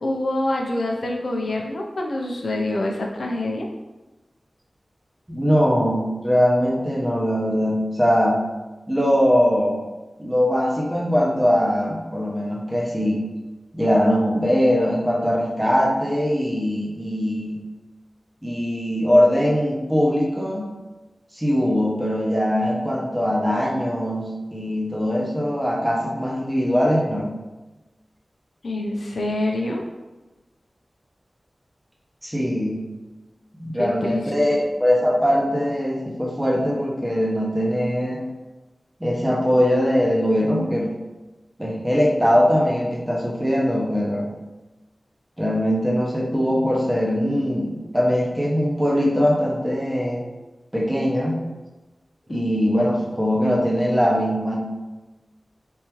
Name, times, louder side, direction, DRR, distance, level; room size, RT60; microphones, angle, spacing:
voice 1, 0.0-3.7 28.6-29.8 33.8-34.3 52.3-52.5, left 1 dB, 80° left, 0 dB, 0.4 m, -26 dB
voice 2, 5.3-8.4 8.9-9.8 10.2-13.2 13.7-17.6 18.4-20.7 21.3-24.2 24.5-27.3 32.2-32.9 33.6-38.2 39.0-40.9 41.6-44.3 45.4-50.2 50.7-51.4 52.3-54.5, equal, 10° right, -3 dB, 0.8 m, -21 dB
3.5 x 2.8 x 2.9 m, 1.1 s
wide cardioid pair, 80°, 0 cm